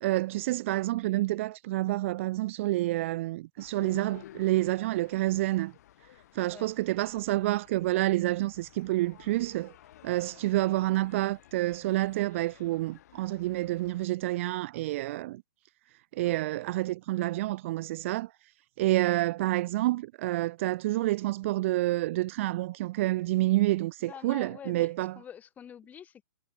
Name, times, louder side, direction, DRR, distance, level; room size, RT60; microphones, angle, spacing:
voice 1, 0.0-5.7 6.3-9.7 10.0-15.4 16.1-18.3 18.8-25.2, right 17 dB, 40° right, 0.5 m, -28 dB
sound 1, 3.6-14.1, left 13 dB, 50° left, 3.2 m, -54 dB
voice 2, 24.0-26.2, left 8 dB, 15° left, 2.6 m, -47 dB
hypercardioid pair, 150°, 11 cm